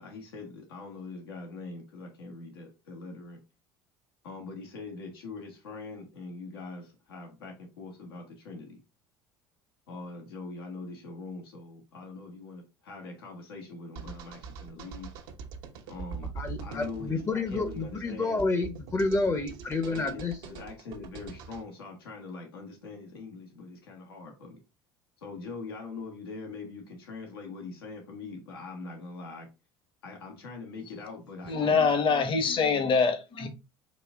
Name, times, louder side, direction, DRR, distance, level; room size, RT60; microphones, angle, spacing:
voice 1, 0.0-3.4 4.2-8.8 9.9-15.1 15.9-16.3 16.6-18.7 19.9-24.6 25.2-29.5 30.0-31.8, left 3 dB, 85° left, 1.2 m, -42 dB
sound 1, 14.0-21.6, right 6 dB, 70° right, 0.7 m, -43 dB
voice 2, 16.4-20.4, left 3 dB, 25° left, 0.7 m, -29 dB
voice 3, 31.4-33.5, left 5 dB, 45° left, 1.0 m, -25 dB
4.2 x 2.6 x 3.5 m
hypercardioid pair, 70°, 12 cm